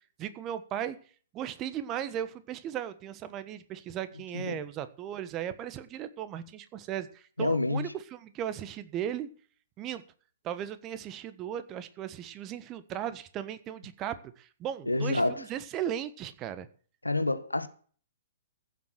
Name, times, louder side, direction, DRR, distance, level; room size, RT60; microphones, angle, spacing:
voice 1, 0.2-1.0 1.3-9.3 9.8-10.0 10.4-16.7, right 10 dB, 25° right, 1.3 m, -36 dB
voice 2, 7.4-7.9 14.9-15.4 17.0-17.7, left 2 dB, 85° left, 1.4 m, -28 dB
15.5 x 7.4 x 6.3 m
figure-of-eight pair, 115°, 0 cm